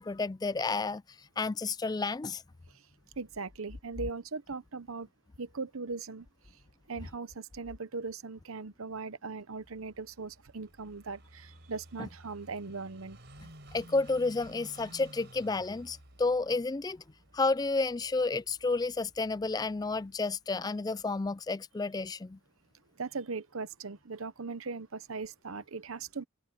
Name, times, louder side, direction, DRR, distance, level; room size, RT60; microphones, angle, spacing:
voice 1, 0.0-2.4 12.0-12.1 13.7-17.0 17.3-22.4, left 3 dB, 20° left, 0.3 m, -31 dB
voice 2, 3.2-5.1 5.4-6.3 6.9-13.2 23.0-26.2, right 4 dB, 75° right, 0.9 m, -39 dB
Car passing by / Idling, 9.6-20.2, right 1 dB, 50° right, 5.0 m, -55 dB
head